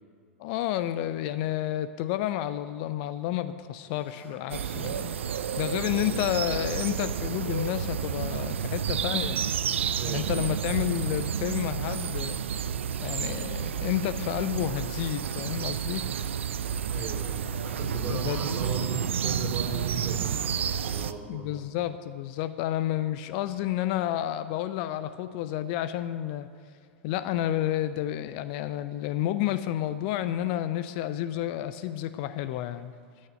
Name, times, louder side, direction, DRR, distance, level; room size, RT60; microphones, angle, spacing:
voice 1, 0.4-9.4 10.1-12.4 13.0-16.1 18.0-18.5 21.3-26.5 27.0-32.9, left 12 dB, 45° left, 12 dB, 0.6 m, -30 dB
sound 1, 3.8-11.7, left 2 dB, 25° left, 2.2 m, -53 dB
sound 2, 4.5-21.1, right 8 dB, 70° right, 0.6 m, -30 dB
voice 2, 10.0-10.6 16.9-21.5, right 4 dB, 30° right, 0 dB, 3.9 m, -37 dB
15.0 x 6.5 x 9.3 m, 2.2 s
figure-of-eight pair, 95°, 7 cm